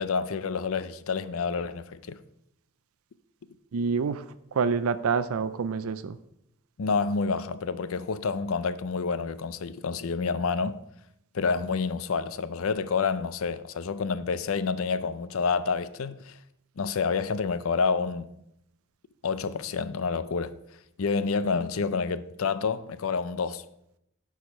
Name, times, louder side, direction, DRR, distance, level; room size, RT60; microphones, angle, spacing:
voice 1, 0.0-2.2 6.8-10.8 11.3-16.4 16.8-18.3 19.2-20.6 21.0-23.6, left 5 dB, 70° left, 0.5 m, -28 dB
voice 2, 3.7-4.2 4.5-6.2, right 5 dB, 75° right, 0.4 m, -27 dB
10.0 x 4.8 x 5.4 m
head